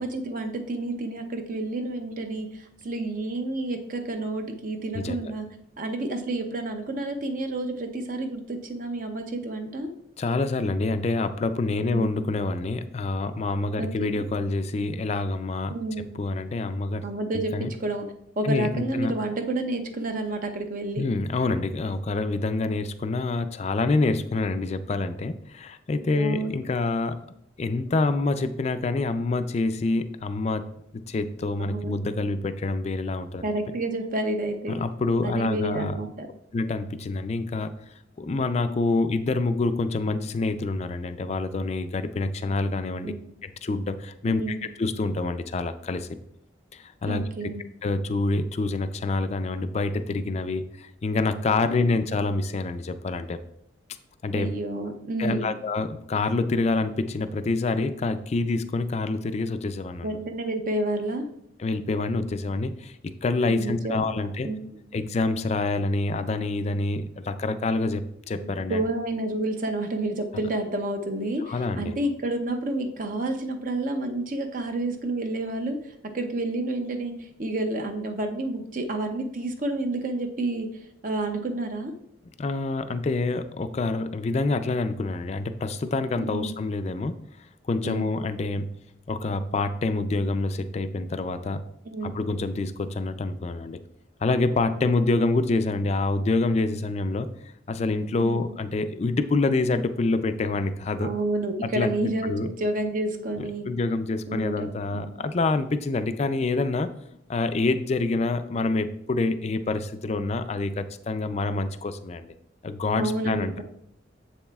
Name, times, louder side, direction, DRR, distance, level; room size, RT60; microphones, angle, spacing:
voice 1, 0.0-5.5 5.8-9.9 11.8-12.1 13.8-14.2 15.7-16.1 17.0-17.5 17.8-18.1 18.4-21.1 26.2-26.5 31.7-32.0 33.4-34.8 35.2-36.3 43.0-43.3 44.3-44.7 47.1-47.6 54.3-55.5 60.0-61.3 63.5-64.0 64.4-64.8 68.4-80.7 81.0-81.9 86.2-86.5 87.8-88.2 91.8-92.2 98.2-98.4 101.0-103.7 104.3-105.3 112.9-113.6, right 2 dB, 45° right, 5 dB, 0.6 m, -30 dB
voice 2, 10.2-15.7 16.2-17.0 17.3-17.7 18.4-19.1 21.0-27.2 27.6-30.7 30.9-33.4 34.7-35.9 36.5-37.7 38.2-43.1 43.4-46.1 46.7-47.2 47.8-53.4 54.2-54.5 55.2-60.2 61.6-64.5 64.9-68.8 71.4-71.9 82.4-87.2 87.7-88.7 89.1-91.6 92.0-93.8 94.2-97.3 97.7-101.1 101.6-102.5 103.4-107.0 107.3-112.3 112.6-113.6, left 3 dB, 35° left, 11 dB, 0.4 m, -27 dB
7.2 x 7.1 x 2.3 m, 0.74 s
head